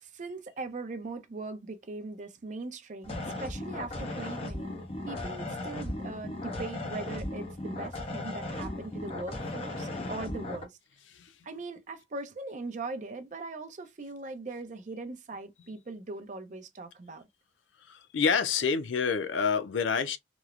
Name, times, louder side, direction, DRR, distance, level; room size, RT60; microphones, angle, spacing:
voice 1, 0.0-4.8 5.1-10.8 11.4-17.2, right 3 dB, 40° right, 0.4 m, -40 dB
sound 1, 3.0-10.6, left 1 dB, 30° left, 0.6 m, -36 dB
voice 2, 17.9-20.2, left 6 dB, 90° left, 0.4 m, -28 dB
2.9 x 2.0 x 2.3 m
head